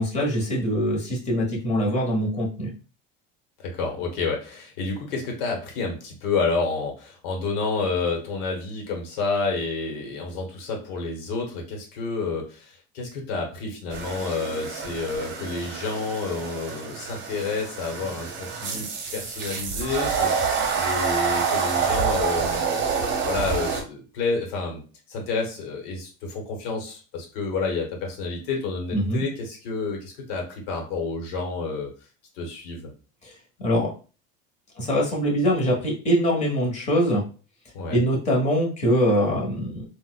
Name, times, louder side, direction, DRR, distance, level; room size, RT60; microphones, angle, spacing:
voice 1, 0.0-2.7 28.9-29.2 33.2-33.3 33.6-33.9 34.8-37.2 37.9-39.8, equal, 25° left, -2 dB, 1.2 m, -23 dB
voice 2, 3.6-24.8 25.1-31.9 32.4-32.9 37.7-38.0, left 4 dB, 80° left, 0 dB, 1.2 m, -29 dB
sound 1, 13.9-23.8, right 5 dB, 40° right, 0.9 m, -27 dB
4.0 x 2.4 x 2.3 m, 0.36 s
supercardioid pair, 135°, 30 cm